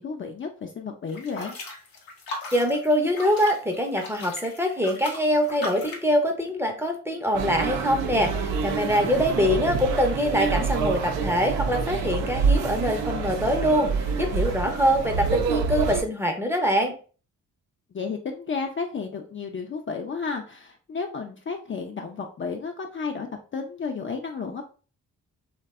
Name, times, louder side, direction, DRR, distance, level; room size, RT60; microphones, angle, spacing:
voice 1, 0.0-1.6 9.0-9.5 17.9-23.3 23.5-24.6, left 5 dB, 35° left, 3 dB, 0.4 m, -32 dB
sound 1, 1.1-6.1, left 2 dB, 75° left, 0.8 m, -38 dB
voice 2, 2.5-16.9, equal, 5° right, 3 dB, 0.6 m, -24 dB
sound 2, 7.3-16.0, right 5 dB, 75° right, 0.5 m, -27 dB
2.6 x 2.1 x 2.3 m, 0.37 s
supercardioid pair, 45°, 35 cm